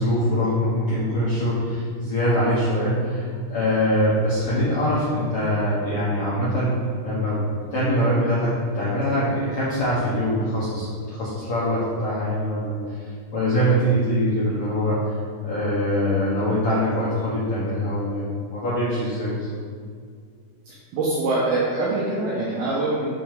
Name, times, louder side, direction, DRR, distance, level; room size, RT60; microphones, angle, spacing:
voice 1, 0.0-6.7 7.0-7.4 7.7-13.0 13.3-15.1 15.4-19.5, equal, 75° left, -10 dB, 1.3 m, -23 dB
voice 2, 20.7-23.1, right 2 dB, 70° right, -7 dB, 2.7 m, -24 dB
6.9 x 4.6 x 5.1 m, 2.1 s
omnidirectional pair, 4.9 m